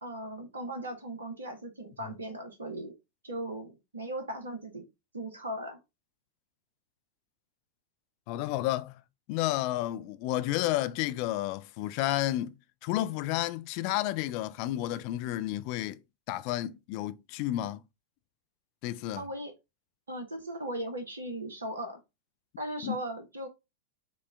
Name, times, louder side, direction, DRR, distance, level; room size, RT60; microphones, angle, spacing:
voice 1, 0.0-2.9 3.2-4.8 5.1-5.8 19.2-19.5 20.1-22.0 22.6-23.5, right 1 dB, 70° right, 0.7 m, -38 dB
voice 2, 8.3-9.0 9.3-12.6 12.8-16.0 16.3-17.8 18.8-19.2 22.8-23.0, left 15 dB, 45° left, 0.3 m, -31 dB
5.2 x 2.2 x 3.4 m
figure-of-eight pair, 90°, 0 cm